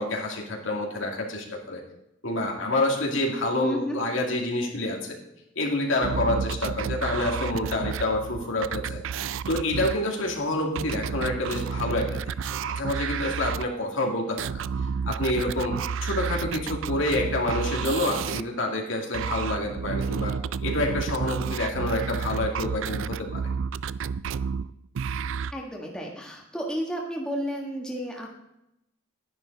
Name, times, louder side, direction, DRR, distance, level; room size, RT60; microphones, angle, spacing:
voice 1, 0.0-1.8 2.2-5.2 5.6-9.0 9.5-14.5 15.1-15.7 16.0-20.3 20.6-23.4, left 1 dB, 75° left, 0 dB, 2.3 m, -28 dB
voice 2, 3.6-4.0 25.5-28.3, equal, 5° left, -1 dB, 1.5 m, -32 dB
sound 1, 6.0-13.6 14.4-18.4 19.1-25.5, right 6 dB, 75° right, 0.3 m, -31 dB
11.5 x 10.5 x 4.0 m, 0.86 s
head